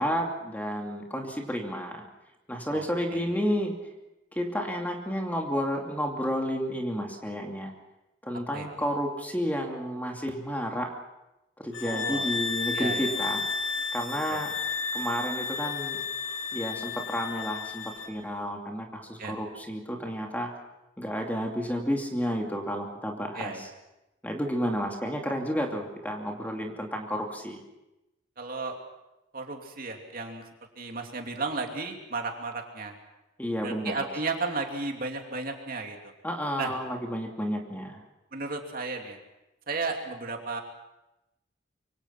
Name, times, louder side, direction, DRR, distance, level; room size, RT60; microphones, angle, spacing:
voice 1, 0.0-2.0 2.5-3.8 4.3-7.7 8.2-10.9 11.6-13.4 13.9-14.5 14.9-16.0 16.5-20.5 21.0-23.7 24.2-27.6 33.4-34.0 36.2-38.0, equal, 10° left, 1 dB, 2.7 m, -31 dB
sound 1, 11.7-18.1, left 5 dB, 75° left, 2.7 m, -32 dB
voice 2, 11.8-12.3 12.7-13.1 14.3-14.4 19.2-19.3 23.4-23.7 28.4-28.8 29.3-30.4 30.8-32.9 33.6-36.0 36.6-36.7 38.3-39.2 39.7-40.6, right 3 dB, 45° right, 3 dB, 2.9 m, -34 dB
26.0 x 24.5 x 5.9 m, 0.93 s
head